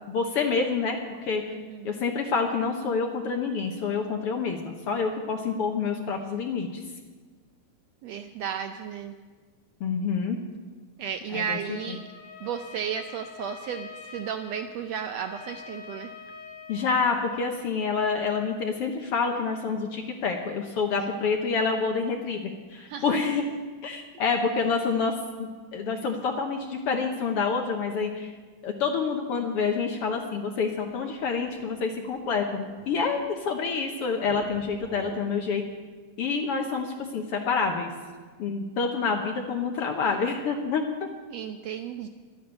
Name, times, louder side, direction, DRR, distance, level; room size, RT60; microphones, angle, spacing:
voice 1, 0.1-1.0 1.2-1.4 1.8-6.8 9.8-10.4 11.3-11.6 11.9-12.0 16.7-23.5 23.8-25.1 25.4-28.3 28.6-35.6 36.2-37.9 38.4-41.1, left 5 dB, 65° left, 3 dB, 1.6 m, -27 dB
voice 2, 1.5-2.0 8.0-9.1 11.0-12.0 12.4-16.1 22.8-23.2 41.3-42.1, right 8 dB, 80° right, 7 dB, 1.5 m, -34 dB
Trumpet, 11.6-17.5, left 5 dB, 80° left, 3.5 m, -45 dB
sound 1, 30.6-33.7 34.1-35.4, right 1 dB, 45° right, 5.2 m, -49 dB
12.0 x 9.6 x 8.8 m, 1.4 s
omnidirectional pair, 3.5 m